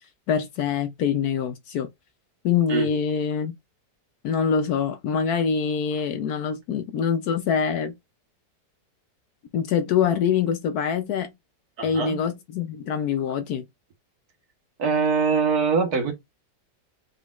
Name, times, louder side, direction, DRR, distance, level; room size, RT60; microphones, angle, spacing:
voice 1, 0.3-1.9 2.4-3.5 4.2-7.9 9.5-11.3 11.8-13.7, left 7 dB, 70° left, 1.1 m, -24 dB
voice 2, 11.8-12.2 14.8-16.1, right 5 dB, 60° right, 1.5 m, -23 dB
5.0 x 4.0 x 2.4 m
omnidirectional pair, 1.9 m